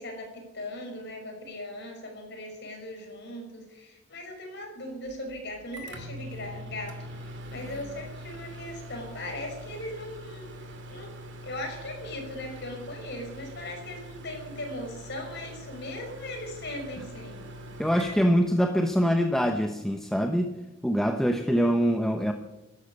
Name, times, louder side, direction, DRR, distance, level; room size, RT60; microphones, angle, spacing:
voice 1, 0.0-11.1 11.4-17.4, left 1 dB, 55° left, 3 dB, 5.6 m, -39 dB
Microwave oven, 5.1-19.1, equal, 60° right, 2.4 m, -43 dB
voice 2, 17.8-20.5 20.8-22.3, equal, ahead, 4 dB, 0.8 m, -24 dB
13.0 x 12.5 x 8.7 m, 1.0 s
head